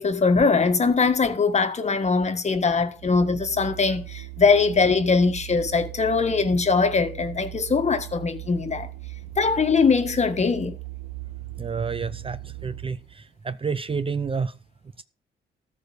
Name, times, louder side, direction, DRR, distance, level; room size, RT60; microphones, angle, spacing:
voice 1, 0.0-8.9 9.4-10.8, left 4 dB, 35° left, 1.6 m, -21 dB
Organ, 2.9-13.2, right 20 dB, 85° right, 2.8 m, -39 dB
voice 2, 11.6-14.6 15.0-15.1, right 5 dB, 25° right, 0.6 m, -29 dB
14.0 x 4.8 x 6.6 m
cardioid pair, 90°, 20 cm